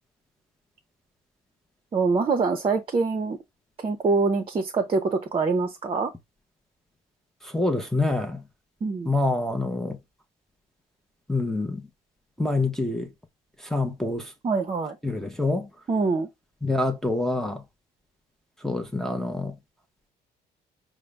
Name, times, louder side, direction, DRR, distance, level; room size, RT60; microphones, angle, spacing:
voice 1, 1.9-3.4 3.8-6.1 8.8-9.1 14.4-15.0 15.9-16.3, right 4 dB, 30° right, 0.7 m, -24 dB
voice 2, 7.4-8.4 9.0-10.0 11.3-11.8 12.4-13.1 13.6-14.3 15.0-15.7 16.6-17.6 18.6-19.6, left 2 dB, ahead, 0.7 m, -26 dB
5.0 x 2.1 x 3.3 m
cardioid pair, 110°, 17 cm